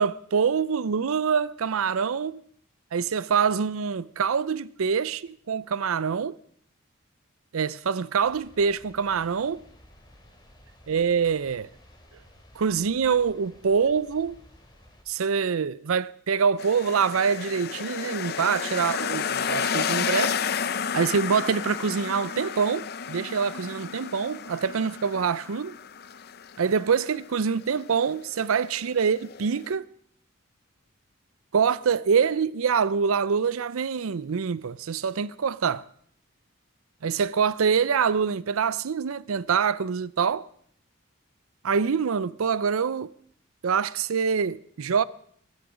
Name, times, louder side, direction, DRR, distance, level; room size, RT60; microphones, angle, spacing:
voice 1, 0.0-2.4 2.9-6.4 7.5-9.6 10.9-11.7 12.6-14.4 15.1-20.5 20.9-25.7 26.6-29.9 31.5-35.8 37.0-40.5 41.6-43.1 43.6-45.0, right 6 dB, 85° right, 0.5 m, -25 dB
sound 1, 8.2-15.0, equal, 20° left, 2.7 m, -54 dB
sound 2, 16.6-29.7, left 7 dB, 50° left, 0.6 m, -32 dB
21.5 x 11.5 x 5.0 m
head